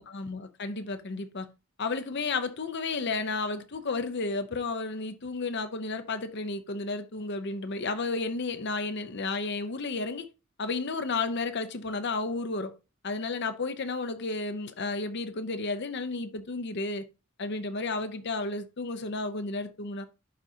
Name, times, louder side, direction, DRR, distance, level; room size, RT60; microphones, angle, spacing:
voice 1, 0.0-1.5 1.8-10.3 10.6-12.7 13.0-17.0 17.4-20.1, left 3 dB, 55° left, 0.8 m, -32 dB
11.0 x 4.0 x 2.8 m
head